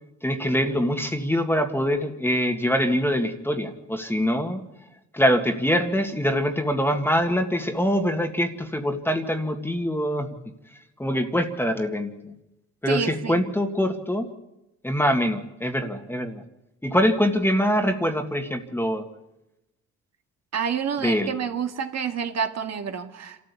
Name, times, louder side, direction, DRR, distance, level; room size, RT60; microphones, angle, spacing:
voice 1, 0.2-4.6 5.1-10.3 11.0-12.3 12.8-14.3 14.8-16.4 16.8-19.1 21.0-21.3, equal, 5° left, 5 dB, 1.9 m, -24 dB
voice 2, 12.9-13.4 20.5-23.4, right 7 dB, 60° right, 6 dB, 2.0 m, -28 dB
26.5 x 14.0 x 8.5 m, 0.92 s
cardioid pair, 90°, 30 cm